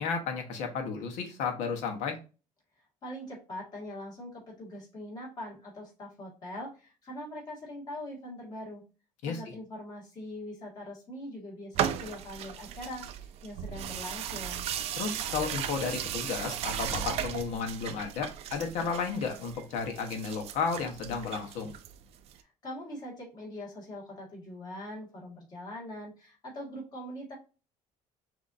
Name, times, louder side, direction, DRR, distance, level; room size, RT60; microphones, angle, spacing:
voice 1, 0.0-2.2 9.2-9.4 15.0-21.7, left 5 dB, 70° left, 4 dB, 1.3 m, -33 dB
voice 2, 3.0-8.8 9.2-14.7 22.4-27.4, left 1 dB, 30° left, -3 dB, 2.1 m, -42 dB
sound 1, 11.7-22.3, right 9 dB, 55° right, 0.5 m, -36 dB
6.0 x 2.8 x 2.7 m, 0.33 s
cardioid pair, 165°, 13 cm